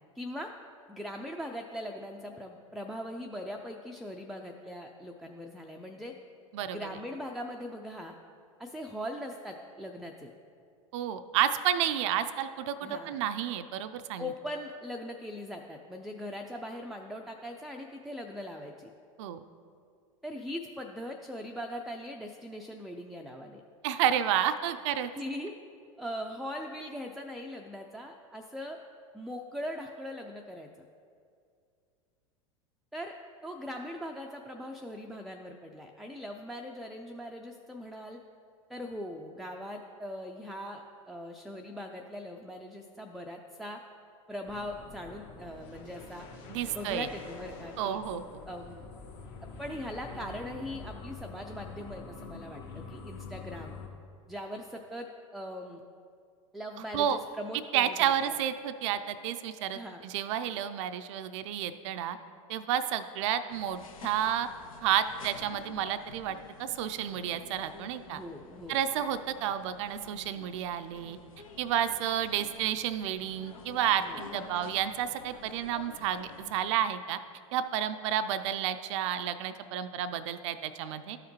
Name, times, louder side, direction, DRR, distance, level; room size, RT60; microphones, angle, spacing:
voice 1, 0.2-0.5 0.9-6.1 6.7-8.1 8.6-10.3 12.8-13.2 14.2-18.9 20.2-23.6 25.1-25.5 26.0-28.8 29.1-30.8 32.9-33.1 33.4-38.2 38.7-43.8 44.3-46.3 46.7-48.0 48.5-48.9 49.4-53.8 54.3-55.8 56.5-58.1 59.7-60.0 68.1-68.8 74.0-74.2 74.5-74.6, equal, ahead, 1 dB, 0.4 m, -40 dB
voice 2, 6.5-6.9 10.9-14.3 19.2-19.4 23.8-25.1 46.5-47.1 47.8-48.2 56.9-57.2 57.7-62.2 62.5-64.5 64.8-68.2 68.7-71.2 71.6-77.2 77.5-81.2, right 10 dB, 60° right, 10 dB, 0.4 m, -31 dB
sound 1, 44.4-53.9, left 4 dB, 55° left, 1.5 m, -46 dB
sound 2, 63.5-76.7, left 5 dB, 80° left, 0.7 m, -50 dB
13.0 x 4.9 x 3.1 m, 2.3 s
hypercardioid pair, 90°, 17 cm